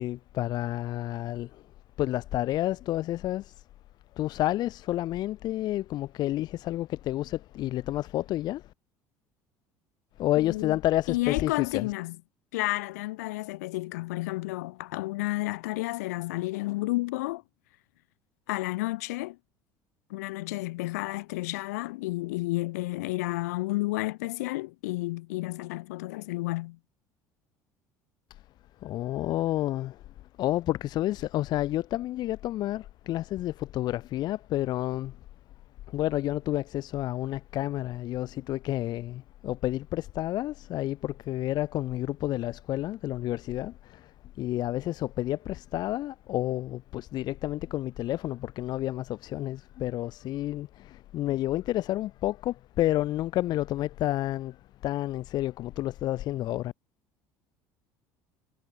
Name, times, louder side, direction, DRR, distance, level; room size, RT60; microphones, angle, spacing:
voice 1, 0.0-1.6 2.0-3.6 4.2-8.7 10.2-11.9 28.8-30.0 30.4-35.2 35.9-54.6 54.8-56.7, left 14 dB, 55° left, 0.6 m, -30 dB
voice 2, 10.4-10.8 11.1-12.2 12.5-17.4 18.5-19.4 20.1-26.8, left 20 dB, 90° left, 1.4 m, -31 dB
supercardioid pair, 90°, 8 cm